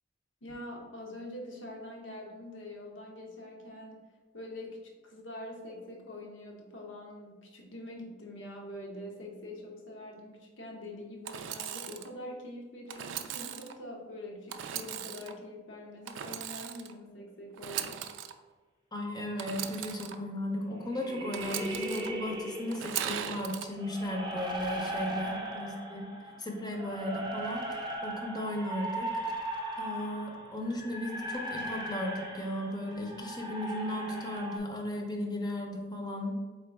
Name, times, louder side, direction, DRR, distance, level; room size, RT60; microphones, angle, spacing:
voice 1, 0.4-4.1 4.3-18.0 25.1-25.2, left 1 dB, 75° left, 0 dB, 0.9 m, -44 dB
Engine / Sawing, 11.2-12.1 12.9-13.7 14.5-15.3 16.1-16.9 17.5-18.3 19.4-20.1 21.3-22.1 22.7-23.7, right 9 dB, 75° right, 0.3 m, -38 dB
voice 2, 18.9-26.1 26.4-29.1 29.8-36.3, left 1 dB, 20° left, 1 dB, 0.6 m, -36 dB
sound 1, 20.9-23.0 23.7-34.6, right 1 dB, 25° right, 0.5 m, -38 dB
3.9 x 3.9 x 3.4 m, 1.4 s
head